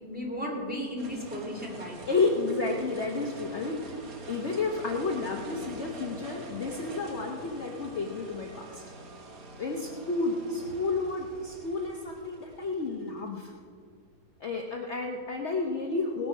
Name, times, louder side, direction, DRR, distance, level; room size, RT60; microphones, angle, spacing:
voice 1, 0.0-2.2, equal, 5° right, -2 dB, 2.4 m, -35 dB
sound 1, 1.0-14.3, right 2 dB, 60° right, 1.8 m, -45 dB
voice 2, 2.1-4.0 4.3-8.8 9.6-13.5 14.4-16.3, left 3 dB, 50° left, 1 dB, 1.1 m, -31 dB
18.0 x 9.3 x 5.4 m, 2.1 s
omnidirectional pair, 1.8 m